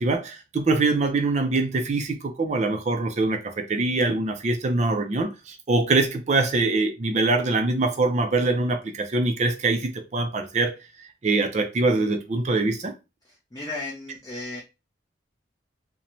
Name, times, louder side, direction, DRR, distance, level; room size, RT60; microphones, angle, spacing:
voice 1, 0.0-10.7 11.2-12.9, right 3 dB, 35° right, 0.4 m, -23 dB
voice 2, 13.2-14.6, left 2 dB, 20° left, 0.5 m, -35 dB
2.6 x 2.1 x 2.9 m
head